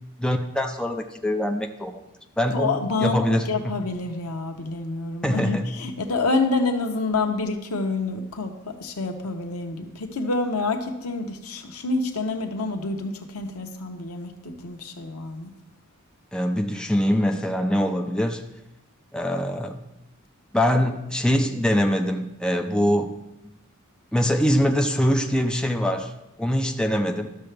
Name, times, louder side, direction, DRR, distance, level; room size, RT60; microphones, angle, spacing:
voice 1, 0.2-2.0 2.4-3.7 5.2-5.7 16.3-18.4 19.1-19.8 20.5-23.1 24.1-26.1 26.4-27.3, equal, 5° left, 4 dB, 0.5 m, -23 dB
voice 2, 2.5-15.5, left 3 dB, 85° left, 4 dB, 1.0 m, -27 dB
12.5 x 6.6 x 3.4 m, 0.91 s
head